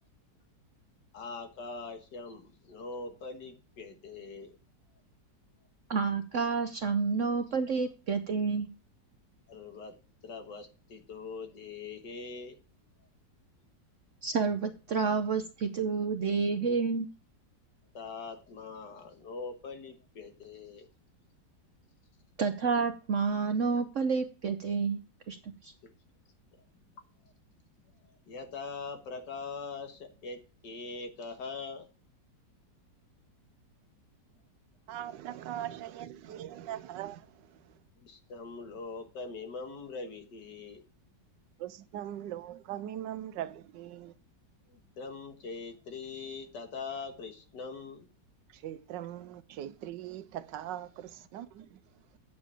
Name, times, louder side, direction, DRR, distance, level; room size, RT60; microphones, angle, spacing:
voice 1, 1.1-4.5 9.5-9.9 10.2-12.6 14.9-15.0 17.9-20.9 25.8-25.9 26.5-26.6 28.0-31.9 38.0-40.8 44.7-48.1, left 4 dB, 70° left, 2.1 m, -42 dB
voice 2, 5.9-8.7 14.2-17.1 22.4-25.0 25.3-25.4 25.6-25.7, right 5 dB, 60° right, 0.8 m, -29 dB
voice 3, 34.9-37.3 41.6-44.1 48.5-51.8, right 12 dB, 85° right, 1.3 m, -40 dB
8.6 x 7.0 x 4.9 m
omnidirectional pair, 1.9 m